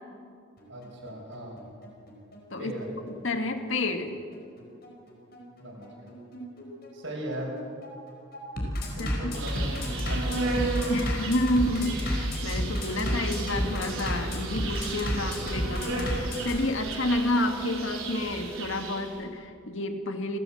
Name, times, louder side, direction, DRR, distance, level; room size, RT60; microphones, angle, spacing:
Bass drum, 0.6-16.6, equal, 45° left, 4.9 m, -32 dB
voice 1, 0.7-1.6 2.6-2.9 5.6-6.1 6.9-7.6 8.9-10.6, right 1 dB, 65° right, -1 dB, 6.9 m, -38 dB
voice 2, 3.1-4.1 9.0-9.3 10.9-20.4, left 1 dB, 70° left, 6 dB, 1.8 m, -29 dB
Insect, 9.3-19.2, right 3 dB, 90° right, 4.7 m, -35 dB
29.5 x 14.5 x 7.7 m, 2.3 s
head